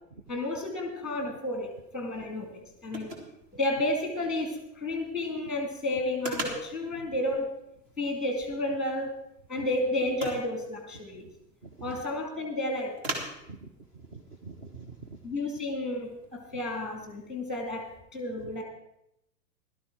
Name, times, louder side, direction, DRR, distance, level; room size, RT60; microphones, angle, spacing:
voice 1, 0.3-3.1 3.5-7.5 8.0-9.1 9.5-11.3 11.8-13.0 15.2-18.6, left 1 dB, ahead, 3 dB, 2.1 m, -31 dB
sound 1, 0.9-18.0, right 1 dB, 35° right, 2.7 m, -45 dB
voice 2, 11.6-12.0 13.5-15.2 16.5-16.6 18.4-18.6, right 3 dB, 20° right, 4 dB, 0.6 m, -46 dB
16.5 x 12.0 x 3.8 m, 0.82 s
figure-of-eight pair, 115°, 50 cm